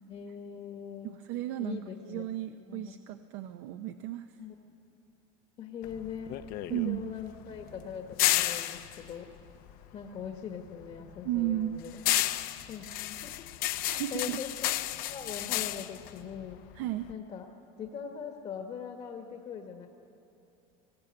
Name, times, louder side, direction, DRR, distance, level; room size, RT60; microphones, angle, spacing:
voice 1, 0.1-1.2 1.6-2.3 2.7-2.9 4.4-4.5 5.6-6.4 6.7-9.3 9.9-12.0 12.7-13.5 13.9-14.7 15.1-16.7 17.1-17.5 17.8-19.9, left 7 dB, 40° left, 4 dB, 1.3 m, -41 dB
voice 2, 1.0-4.3 6.7-7.1 11.2-11.8 13.9-14.4 16.7-17.1, right 14 dB, 75° right, 8 dB, 0.7 m, -34 dB
sound 1, 5.8-10.3 10.7-17.1, left 15 dB, 60° left, 0.7 m, -32 dB
19.5 x 16.5 x 8.8 m, 3.0 s
cardioid pair, 140°, 16 cm